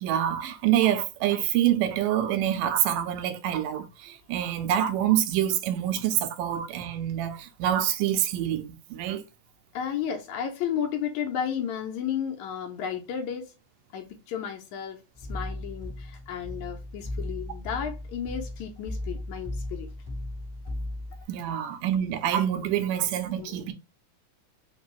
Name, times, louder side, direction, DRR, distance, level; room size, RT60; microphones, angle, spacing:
voice 1, 0.0-9.2 21.3-23.7, right 11 dB, 90° right, 2.2 m, -26 dB
voice 2, 9.7-13.5 13.9-19.9 22.5-22.7 23.4-23.7, left 8 dB, 75° left, 1.9 m, -33 dB
sound 1, 15.1-21.2, left 1 dB, 35° right, 0.4 m, -36 dB
5.2 x 2.4 x 3.1 m
omnidirectional pair, 3.7 m